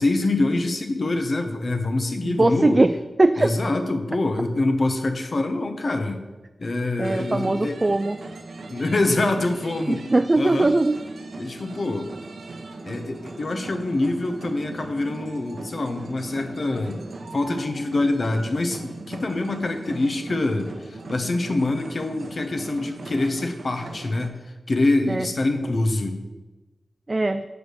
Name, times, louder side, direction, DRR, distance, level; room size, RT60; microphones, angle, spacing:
voice 1, 0.0-2.8 3.4-6.2 6.6-7.8 8.7-10.0 10.3-10.7 11.4-12.1 12.8-17.0 17.3-24.3 24.7-26.2, left 2 dB, 60° left, 6 dB, 1.0 m, -25 dB
voice 2, 2.2-2.9 3.2-3.5 7.0-8.2 9.9-11.0 25.1-25.3 27.1-27.4, right 2 dB, 35° right, 9 dB, 0.3 m, -20 dB
sound 1, 7.0-24.3, right 3 dB, 80° right, 0.8 m, -39 dB
7.0 x 4.9 x 6.5 m, 1.1 s
cardioid pair, 55°, 0 cm